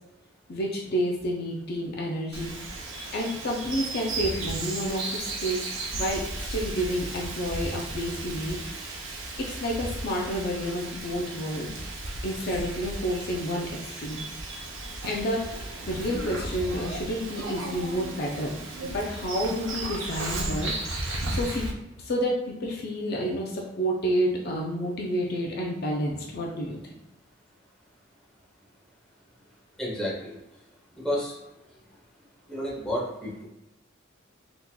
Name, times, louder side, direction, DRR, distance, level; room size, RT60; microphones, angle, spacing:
voice 1, 0.5-2.5 3.1-5.6 5.9-8.6 9.6-11.8 12.2-14.2 15.0-21.7 22.0-26.8, equal, 55° left, -1 dB, 0.5 m, -30 dB
Bird vocalization bird call bird song, 2.3-21.7, right 2 dB, 75° right, 0.7 m, -35 dB
voice 2, 29.8-30.4 31.0-31.3 32.5-33.4, equal, 5° left, -6 dB, 1.0 m, -30 dB
3.7 x 2.9 x 2.2 m, 0.93 s
head